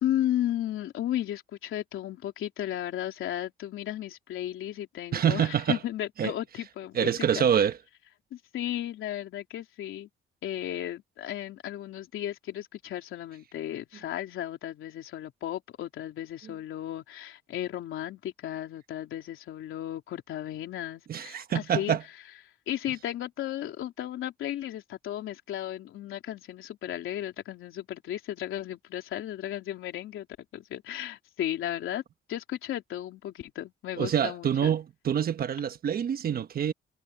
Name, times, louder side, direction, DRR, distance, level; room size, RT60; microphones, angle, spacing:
voice 1, 0.0-7.5 8.3-10.1 10.4-22.0 22.7-30.3 30.5-32.0 32.3-34.8, left 12 dB, 90° left, 3.4 m, -34 dB
voice 2, 5.1-5.8 6.2-6.3 6.9-7.8 21.1-22.0 34.0-36.7, right 8 dB, 45° right, 1.1 m, -26 dB
cardioid pair, 160°, 20 cm